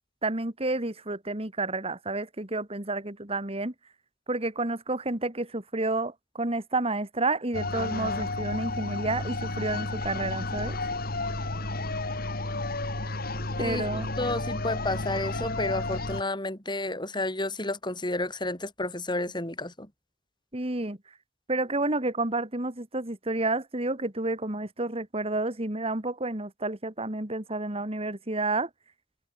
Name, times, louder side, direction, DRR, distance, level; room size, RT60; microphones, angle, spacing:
voice 1, 0.2-3.7 4.3-10.8 13.6-14.1 20.5-21.0 21.5-28.7, right 2 dB, 35° right, 2.9 m, -30 dB
sound 1, 7.5-16.2, left 2 dB, 55° left, 3.6 m, -32 dB
voice 2, 13.6-13.9 14.2-19.9, left 2 dB, 25° left, 7.4 m, -31 dB
head